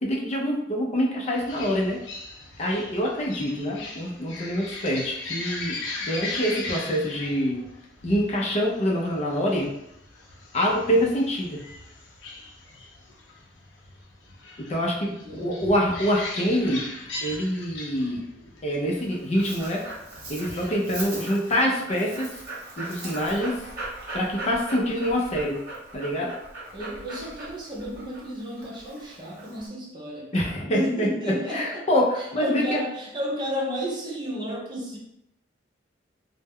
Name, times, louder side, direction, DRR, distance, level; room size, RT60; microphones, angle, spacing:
voice 1, 0.0-2.0 2.6-5.8 6.0-7.7 8.0-9.7 10.5-11.6 14.6-16.9 17.2-18.2 18.6-19.8 20.3-22.4 22.8-23.6 24.1-25.6 25.9-26.3 30.3-32.8, equal, 40° left, -2 dB, 0.4 m, -25 dB
sound 1, 1.3-21.1, left 2 dB, 90° left, 0.5 m, -39 dB
voice 2, 15.1-15.7 26.7-30.4 30.7-31.9 32.1-35.0, equal, 25° right, -3 dB, 0.6 m, -32 dB
Dog, 18.9-29.7, right 2 dB, 55° right, 0.9 m, -39 dB
2.1 x 2.0 x 3.5 m, 0.81 s
head